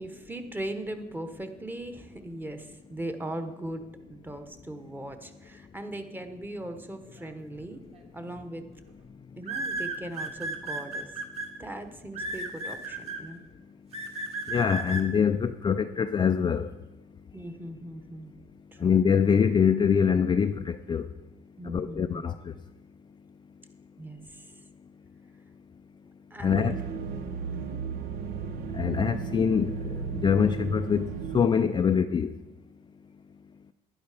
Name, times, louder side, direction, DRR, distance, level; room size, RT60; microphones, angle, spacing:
voice 1, 0.0-7.8 8.1-8.7 9.4-11.1 11.6-13.4 17.3-18.3 18.7-18.9 21.6-22.2 24.0-24.4 26.3-26.7 27.5-27.8, right 1 dB, 10° right, 8 dB, 1.0 m, -39 dB
sound 1, 7.9-8.2 9.4-11.5 12.1-13.2 13.9-15.0, right 2 dB, 35° right, 1.8 m, -33 dB
voice 2, 14.5-16.7 18.8-21.1 21.6-22.5 26.4-26.8 28.7-32.4, left 7 dB, 25° left, 8 dB, 0.4 m, -24 dB
sound 2, 26.5-32.0, right 6 dB, 65° right, 0.9 m, -35 dB
11.5 x 9.9 x 5.0 m, 1.1 s
cardioid pair, 110°, 17 cm